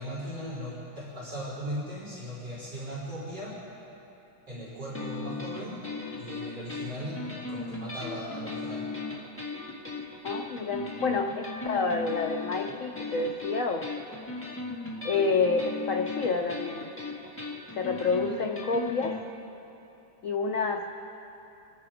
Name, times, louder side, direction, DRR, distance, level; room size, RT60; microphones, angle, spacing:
voice 1, 0.0-3.7 4.5-5.9 6.2-8.9, equal, 55° right, -9 dB, 4.2 m, -38 dB
sound 1, 4.9-19.2, left 3 dB, 5° left, 1.7 m, -37 dB
voice 2, 10.2-13.9 15.0-16.9 17.7-19.2 20.2-20.9, left 4 dB, 70° left, 4 dB, 0.7 m, -28 dB
27.5 x 10.5 x 4.9 m, 3.0 s
omnidirectional pair, 2.2 m